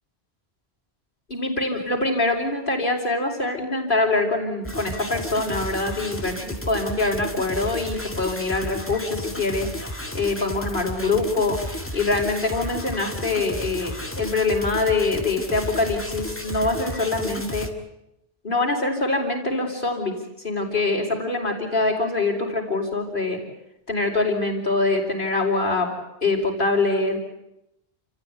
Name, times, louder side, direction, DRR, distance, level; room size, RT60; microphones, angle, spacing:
voice 1, 1.3-17.7 18.4-20.2 20.4-23.4 23.9-25.9 26.2-27.2, left 3 dB, 55° left, -2 dB, 5.3 m, -24 dB
sound 1, 4.6-17.7, equal, 10° left, 2.1 m, -33 dB
29.5 x 15.0 x 9.8 m, 0.86 s
omnidirectional pair, 1.1 m